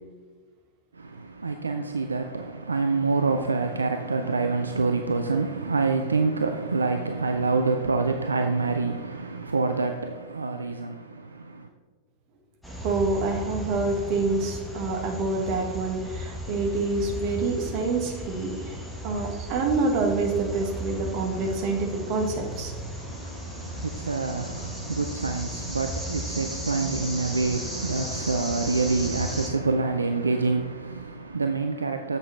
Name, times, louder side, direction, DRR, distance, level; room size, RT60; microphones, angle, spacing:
voice 1, 0.9-11.7 23.0-32.2, right 3 dB, 75° right, 0.4 m, -27 dB
sound 1, 12.6-29.5, equal, ahead, 1.3 m, -36 dB
voice 2, 12.8-18.8 19.0-22.8, right 3 dB, 45° right, 1.3 m, -27 dB
7.5 x 6.7 x 3.2 m
figure-of-eight pair, 90°, 0 cm